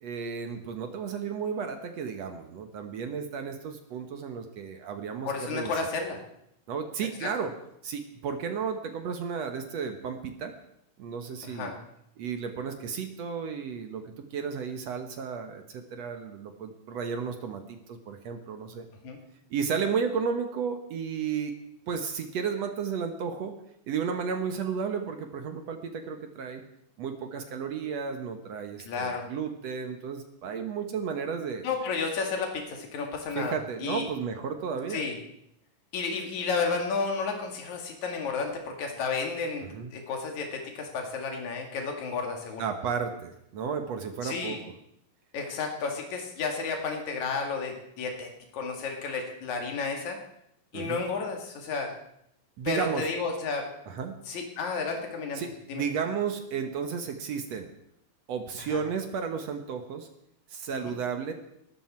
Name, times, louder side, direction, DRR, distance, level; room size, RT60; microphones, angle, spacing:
voice 1, 0.0-5.7 6.7-7.5 7.8-10.5 11.0-11.8 12.2-18.9 19.5-21.5 21.9-23.6 23.9-26.6 27.0-31.6 33.4-35.0 39.6-39.9 42.6-44.6 50.7-51.0 52.6-53.1 53.9-54.2 55.4-57.7 58.3-60.1 60.5-61.3, right 6 dB, 65° right, 6 dB, 2.2 m, -33 dB
voice 2, 5.2-6.2 7.2-7.3 11.4-11.8 19.0-19.2 28.9-29.3 31.6-34.1 34.9-35.2 35.9-42.6 44.2-44.6 45.3-50.2 50.7-51.9 52.6-53.7 54.3-55.4 55.7-55.8 58.7-58.8 60.8-61.0, left 4 dB, 65° left, 2 dB, 3.6 m, -32 dB
19.0 x 13.5 x 4.5 m, 0.76 s
omnidirectional pair, 3.5 m